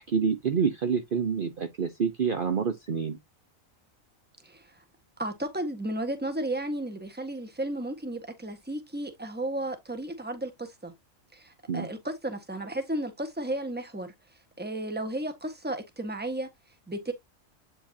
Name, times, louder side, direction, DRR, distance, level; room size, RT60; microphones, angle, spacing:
voice 1, 0.0-3.2 11.7-11.9, right 6 dB, 45° right, 0.9 m, -27 dB
voice 2, 4.4-4.8 5.2-10.9 11.3-14.1 14.6-16.5 16.9-17.1, right 1 dB, 10° right, 1.3 m, -33 dB
8.8 x 5.4 x 2.8 m
omnidirectional pair, 1.4 m